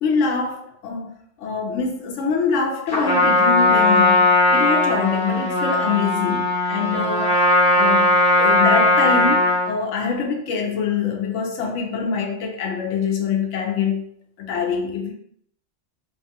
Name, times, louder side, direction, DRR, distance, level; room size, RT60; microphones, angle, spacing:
voice 1, 0.0-1.1 1.4-7.3 7.7-14.1 14.4-15.1, left 5 dB, 90° left, 1 dB, 0.9 m, -24 dB
Trumpet, 2.9-9.7, left 2 dB, 55° left, 0.9 m, -18 dB
2.5 x 2.3 x 2.7 m, 0.69 s
omnidirectional pair, 1.2 m